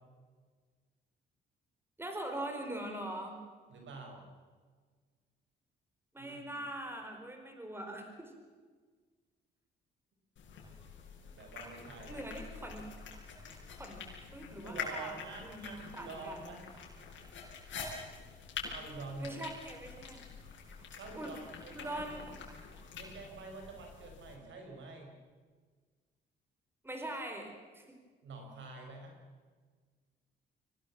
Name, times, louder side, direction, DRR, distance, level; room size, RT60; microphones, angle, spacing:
voice 1, 2.0-3.4 6.1-8.3 12.1-12.9 13.7-14.0 14.3-16.5 19.2-20.2 21.1-21.3 21.8-22.2 26.8-27.8, right 1 dB, 10° right, 4 dB, 4.5 m, -42 dB
voice 2, 3.7-4.2 6.2-6.5 11.3-12.2 14.6-16.7 18.7-19.4 20.9-22.1 23.0-25.1 28.2-29.2, right 3 dB, 70° right, 3 dB, 5.7 m, -47 dB
sound 1, 10.4-24.4, left 5 dB, 70° left, 6.4 m, -46 dB
24.5 x 18.5 x 7.4 m, 1.5 s
cardioid pair, 90°, 20 cm